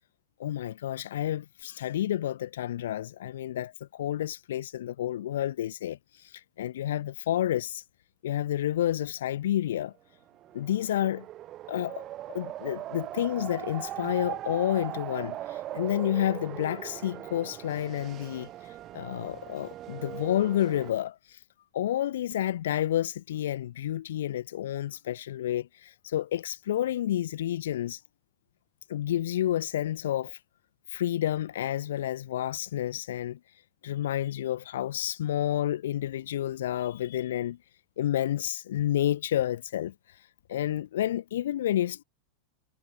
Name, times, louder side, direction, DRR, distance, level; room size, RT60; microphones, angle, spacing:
voice 1, 0.4-7.8 8.2-9.9 10.5-11.3 11.7-21.4 21.7-28.0 28.9-30.4 30.9-33.4 33.8-37.6 38.0-42.0, left 12 dB, 60° left, 0.9 m, -30 dB
sound 1, 10.3-20.9, right 13 dB, 35° right, 0.9 m, -40 dB
figure-of-eight pair, 90°, 0 cm